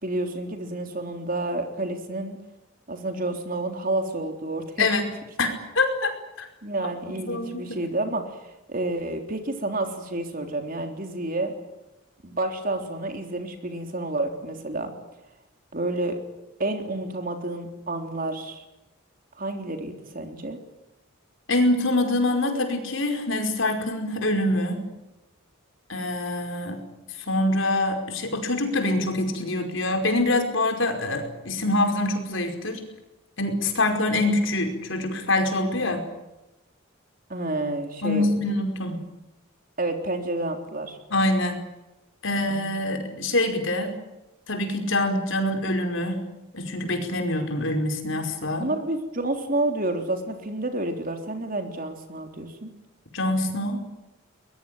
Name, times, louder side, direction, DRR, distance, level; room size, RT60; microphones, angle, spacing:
voice 1, 0.0-2.4 2.9-4.9 6.6-11.5 12.2-14.9 15.7-16.2 16.6-18.6 19.4-20.6 37.3-38.3 39.8-41.0 42.4-42.7 48.6-52.7, right 2 dB, 40° right, 5 dB, 3.7 m, -29 dB
voice 2, 4.8-5.1 5.4-6.5 7.1-7.7 21.5-24.8 25.9-26.8 27.3-32.8 33.4-36.0 38.0-39.0 41.1-41.6 42.2-44.0 44.5-46.2 46.5-48.7 53.1-53.8, left 2 dB, 65° left, 5 dB, 5.1 m, -25 dB
23.0 x 21.5 x 9.2 m, 0.96 s
head